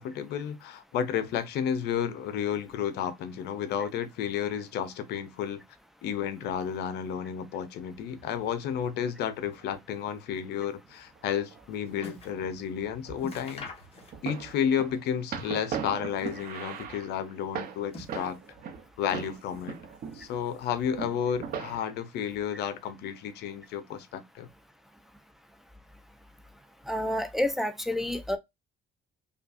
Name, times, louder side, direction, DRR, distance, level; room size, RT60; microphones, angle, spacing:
voice 1, 0.0-5.6 6.0-13.7 14.2-18.4 19.0-19.8 20.1-24.5, left 8 dB, 75° left, 0.7 m, -32 dB
sound 1, 8.0-8.8 9.5-9.9 10.8-11.6 11.9-18.9 19.1-20.4 20.7-21.8, right 7 dB, 60° right, 1.0 m, -40 dB
sound 2, 11.5-12.4 12.8-12.9 13.2-14.5 14.8-15.7 16.1-16.9 17.6-18.6 19.0-19.8 20.0-20.8 21.5-21.6, left 3 dB, 35° left, 1.4 m, -47 dB
voice 2, 26.9-28.4, left 1 dB, ahead, 0.6 m, -29 dB
5.1 x 2.4 x 2.6 m
cardioid pair, 110°, 17 cm